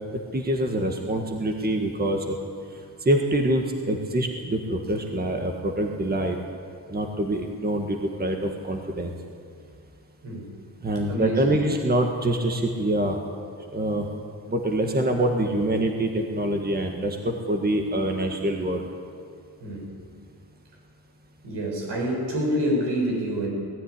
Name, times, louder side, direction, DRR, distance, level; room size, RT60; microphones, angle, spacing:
voice 1, 0.1-2.3 3.0-6.4 6.9-9.1 10.8-13.2 13.7-14.1 14.5-18.9, right 1 dB, 25° right, 3 dB, 1.7 m, -25 dB
voice 2, 11.1-11.6 19.6-19.9 21.4-23.5, equal, 85° right, -2 dB, 7.6 m, -27 dB
19.0 x 14.0 x 10.0 m, 2.3 s
wide cardioid pair, 140°, 41 cm